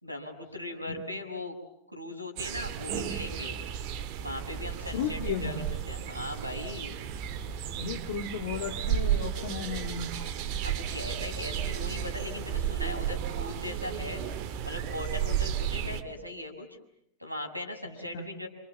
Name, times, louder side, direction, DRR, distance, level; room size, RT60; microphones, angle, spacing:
voice 1, 0.0-1.6 1.9-3.6 4.2-6.9 10.6-14.2 14.6-16.8 17.2-18.5, left 1 dB, 90° left, 1 dB, 5.7 m, -39 dB
sound 1, 2.4-16.0, right 9 dB, 40° right, 2.3 m, -33 dB
voice 2, 4.9-5.7 7.8-10.1 18.1-18.3, left 6 dB, 55° left, 5 dB, 2.0 m, -34 dB
28.0 x 28.0 x 7.3 m, 0.78 s
figure-of-eight pair, 90°, 0 cm